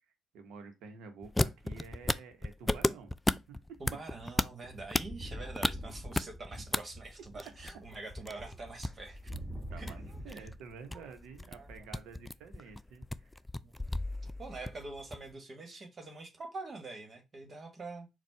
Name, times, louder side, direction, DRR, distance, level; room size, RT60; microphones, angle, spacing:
voice 1, 0.3-3.1 3.5-3.8 9.7-13.3, right 5 dB, 80° right, 0.9 m, -50 dB
sound 1, 1.2-6.8 7.0-15.3, left 1 dB, 15° left, 0.3 m, -34 dB
voice 2, 3.8-9.3 9.7-9.9 10.3-10.5 11.6-11.7 13.6-13.7 14.4-18.1, right 3 dB, 50° right, 1.4 m, -45 dB
sound 2, 4.7-10.6 10.9-11.8, equal, 25° right, 2.4 m, -46 dB
4.2 x 2.3 x 4.5 m
supercardioid pair, 55°, 0 cm